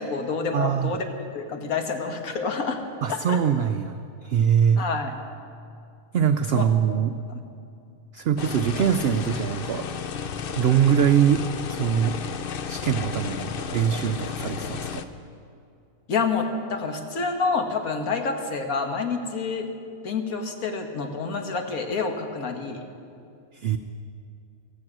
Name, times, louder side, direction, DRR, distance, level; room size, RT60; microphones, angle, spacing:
voice 1, 0.0-2.8 3.3-3.4 4.8-5.2 6.5-6.6 7.3-7.4 16.1-19.7 20.0-22.8, left 4 dB, 70° left, 5 dB, 1.7 m, -28 dB
voice 2, 0.5-0.9 3.0-4.8 6.1-7.1 8.1-9.9 10.5-11.4 11.7-12.1 12.7-15.0 23.5-23.8, right 8 dB, 70° right, 9 dB, 0.6 m, -23 dB
sound 1, 8.4-15.0, left 6 dB, 55° left, 0.6 m, -33 dB
15.5 x 14.5 x 6.1 m, 2.5 s
omnidirectional pair, 1.5 m